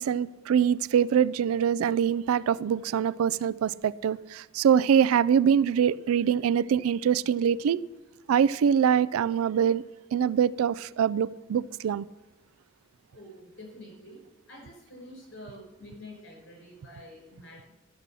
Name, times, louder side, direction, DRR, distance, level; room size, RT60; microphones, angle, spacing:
voice 1, 0.0-7.8 8.3-9.8 10.1-12.0, right 8 dB, 85° right, 0.3 m, -24 dB
voice 2, 13.1-14.2 14.5-17.7, left 1 dB, 60° left, 4.9 m, -47 dB
12.5 x 6.2 x 6.7 m
head